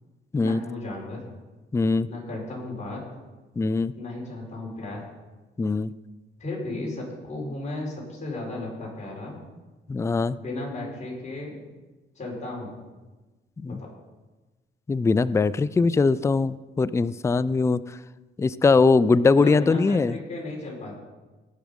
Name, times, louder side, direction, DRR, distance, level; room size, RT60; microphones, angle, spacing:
voice 1, 0.3-1.2 2.1-3.0 4.0-5.0 6.4-9.4 10.3-11.6 12.1-12.8 13.6-13.9 19.3-21.0, left 2 dB, 35° left, -2 dB, 5.0 m, -35 dB
voice 2, 1.7-2.1 3.6-3.9 5.6-5.9 9.9-10.4 13.6-13.8 14.9-17.8 18.4-20.1, left 4 dB, 15° left, 17 dB, 0.3 m, -21 dB
18.0 x 6.2 x 5.3 m, 1.2 s
cardioid pair, 90°, 20 cm